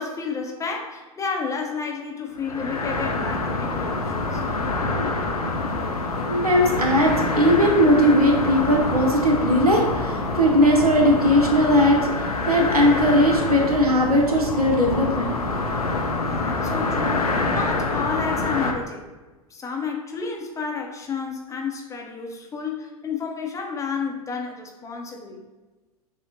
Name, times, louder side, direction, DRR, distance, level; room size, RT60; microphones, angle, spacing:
voice 1, 0.0-4.4 16.2-19.0 19.5-25.4, left 5 dB, 15° left, 1 dB, 0.6 m, -31 dB
sound 1, 2.4-18.7, left 3 dB, 85° left, 0.5 m, -26 dB
voice 2, 6.3-15.3, equal, 85° right, 1 dB, 0.8 m, -19 dB
6.3 x 2.1 x 2.9 m, 1.2 s
figure-of-eight pair, 90°, 19 cm